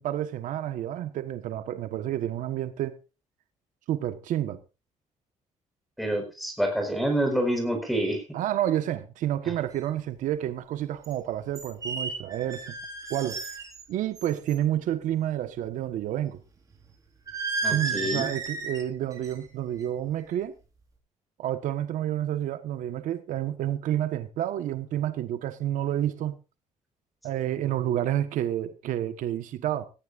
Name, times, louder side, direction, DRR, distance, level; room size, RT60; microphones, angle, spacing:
voice 1, 0.0-3.0 3.9-4.6 8.3-12.8 13.1-13.4 13.9-16.4 17.7-20.5 21.4-26.4 27.2-29.9, right 12 dB, 75° right, 1.4 m, -29 dB
voice 2, 6.0-8.2 17.6-18.3, right 1 dB, ahead, 4.9 m, -27 dB
sound 1, 9.7-9.8 11.0-11.1 11.5-13.8 14.1-14.5 17.3-18.8 19.1-19.5 19.8-20.1, right 4 dB, 25° right, 5.0 m, -33 dB
18.5 x 15.0 x 2.6 m
cardioid pair, 170°, 13 cm